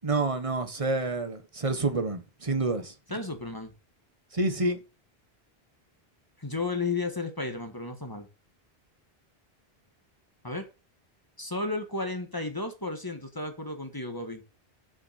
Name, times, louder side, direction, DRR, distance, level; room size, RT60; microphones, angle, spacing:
voice 1, 0.0-2.9 4.3-4.8, right 2 dB, 35° right, 1.3 m, -28 dB
voice 2, 3.1-3.7 6.4-8.3 10.4-10.7 11.4-14.4, left 3 dB, 20° left, 1.5 m, -33 dB
7.1 x 6.6 x 6.5 m
omnidirectional pair, 1.0 m